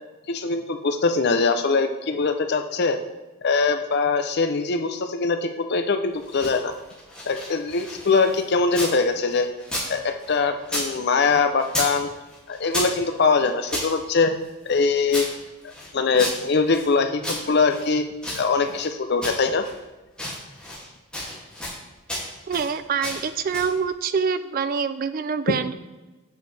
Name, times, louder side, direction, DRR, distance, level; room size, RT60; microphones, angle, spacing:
voice 1, 0.3-3.0 3.4-6.7 7.3-9.5 9.9-12.1 12.5-14.3 14.7-15.3 15.9-18.0 18.3-19.7, left 4 dB, 45° left, 7 dB, 0.5 m, -22 dB
sound 1, 6.1-9.0 9.3-10.9 11.1-12.0 12.3-13.9 14.4-16.9 17.2-18.9 19.2-19.8 20.1-20.9 21.1-21.8 22.1-22.7 23.0-23.8, left 1 dB, 5° left, 2.2 m, -33 dB
voice 2, 22.5-25.7, right 6 dB, 40° right, 12 dB, 0.3 m, -25 dB
8.1 x 6.3 x 3.3 m, 1.2 s
head